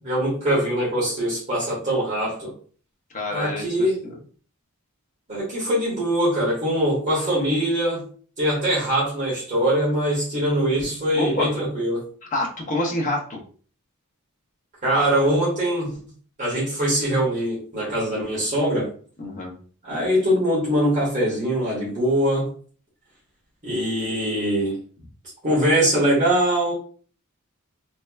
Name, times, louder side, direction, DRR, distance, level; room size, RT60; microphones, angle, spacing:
voice 1, 0.0-2.5 3.3-3.9 5.3-8.0 8.4-12.1 14.8-15.9 16.4-18.9 19.8-22.5 23.6-24.8 25.4-26.7, right 1 dB, 35° right, -7 dB, 1.5 m, -22 dB
voice 2, 3.1-4.2 11.1-11.5 12.3-13.4 19.2-19.5, left 2 dB, 35° left, -1 dB, 0.9 m, -27 dB
3.2 x 2.8 x 2.3 m, 0.43 s
head